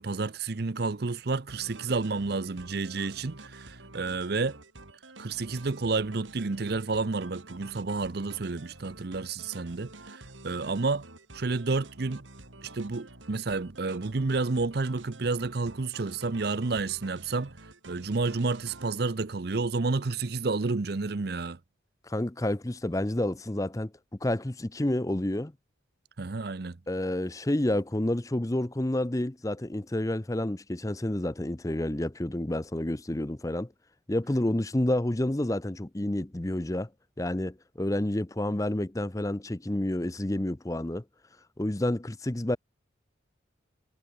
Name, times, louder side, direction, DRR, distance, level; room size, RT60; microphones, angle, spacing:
voice 1, 0.0-4.6 5.2-11.1 11.3-12.2 12.6-17.5 17.9-21.6 26.2-26.8, right 3 dB, 55° right, 0.7 m, -30 dB
sound 1, 1.5-18.9, right 2 dB, 80° right, 4.5 m, -49 dB
voice 2, 22.0-23.9 24.2-25.5 26.9-33.7 34.1-36.9 37.2-41.0 41.6-42.6, left 1 dB, 15° left, 0.6 m, -29 dB
head